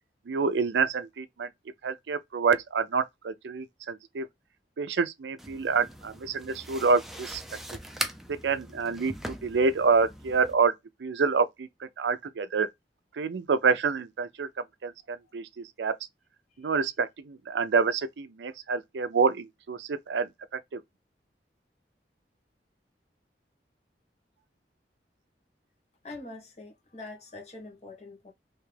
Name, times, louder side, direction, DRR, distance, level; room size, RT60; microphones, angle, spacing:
voice 1, 0.3-1.5 1.8-4.3 4.8-7.4 8.4-10.7 11.0-11.7 12.0-12.7 13.2-14.5 14.8-15.9 16.6-20.3 20.7-20.8, right 5 dB, 80° right, 0.5 m, -27 dB
sound 1, 5.4-10.5, right 1 dB, ahead, 0.5 m, -40 dB
voice 2, 26.0-28.3, left 2 dB, 40° left, 1.3 m, -44 dB
3.3 x 2.8 x 3.3 m
head